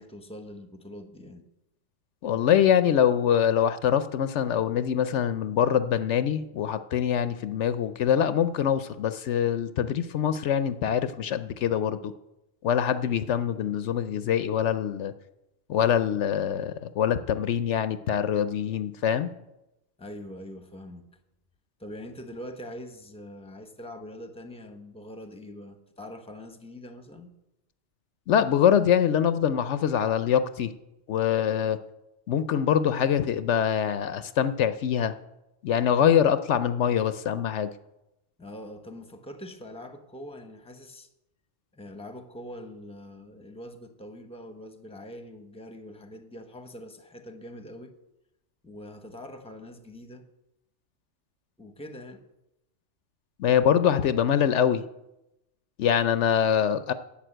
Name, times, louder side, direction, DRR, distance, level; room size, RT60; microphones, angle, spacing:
voice 1, 0.0-1.5 20.0-21.1 21.8-27.3 38.4-41.1 41.7-47.9 48.6-50.3 51.6-52.2, left 1 dB, 5° left, 0.9 m, -43 dB
voice 2, 2.2-12.1 12.6-15.1 15.7-19.3 28.3-30.7 31.1-31.8 32.3-35.1 35.6-37.7 53.4-54.9 55.8-56.9, left 9 dB, 70° left, 0.9 m, -24 dB
11.0 x 7.3 x 8.9 m
omnidirectional pair, 1.3 m